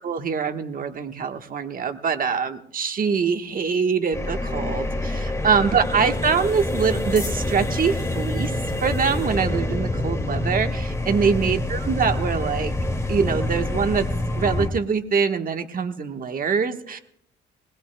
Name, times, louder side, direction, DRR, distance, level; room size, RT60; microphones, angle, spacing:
voice 1, 0.0-5.2 5.4-8.5 8.8-12.7 13.1-14.1 14.4-17.0, right 6 dB, 45° right, 6 dB, 1.3 m, -24 dB
sound 1, 4.1-14.7, left 1 dB, 15° left, 2.3 m, -26 dB
21.0 x 20.0 x 2.2 m, 0.70 s
cardioid pair, 90°, 20 cm